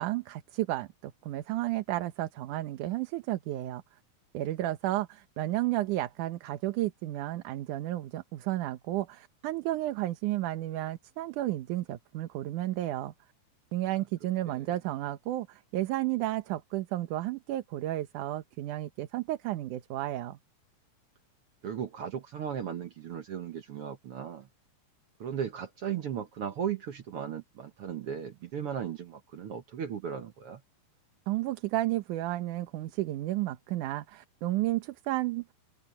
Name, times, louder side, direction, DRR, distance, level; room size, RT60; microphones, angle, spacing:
voice 1, 0.0-3.8 4.3-13.1 13.7-20.4 31.3-35.4, right 15 dB, 80° right, 2.5 m, -32 dB
voice 2, 21.6-24.5 25.2-30.6, right 8 dB, 60° right, 1.7 m, -36 dB
omnidirectional pair, 3.6 m